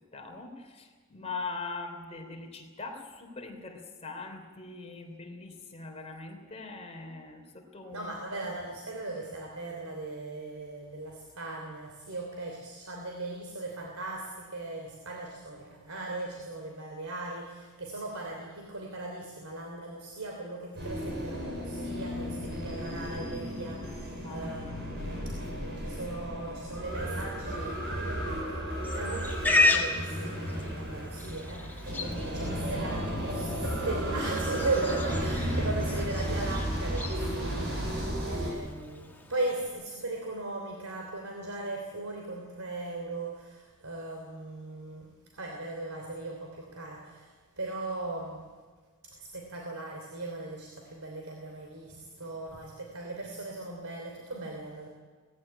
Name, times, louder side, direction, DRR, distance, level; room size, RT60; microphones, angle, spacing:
voice 1, 0.1-8.1 24.2-24.7 25.2-25.8 35.3-35.7, left 3 dB, 30° left, 3 dB, 3.1 m, -42 dB
voice 2, 7.9-48.5 49.0-54.9, right 2 dB, 80° right, 2 dB, 3.0 m, -38 dB
sound 1, 20.8-38.5, equal, 55° right, 7.1 m, -34 dB
Livestock farm animals working animals, 28.8-39.7, left 2 dB, 10° left, 2.0 m, -33 dB
18.5 x 16.0 x 9.8 m, 1.4 s
head